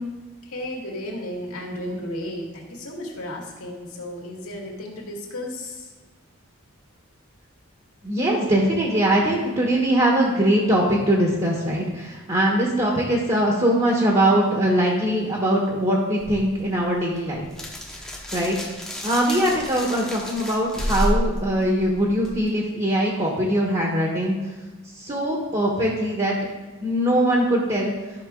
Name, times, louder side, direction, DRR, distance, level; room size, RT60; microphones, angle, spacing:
voice 1, 0.4-5.9, left 1 dB, 90° left, -2 dB, 2.3 m, -34 dB
voice 2, 8.0-17.4 18.3-18.6 19.0-24.4 25.0-26.4 26.8-27.9, right 1 dB, 30° right, -2 dB, 1.3 m, -21 dB
sound 1, 16.2-22.5, equal, ahead, 1.0 m, -30 dB
12.5 x 6.2 x 3.8 m, 1.2 s
head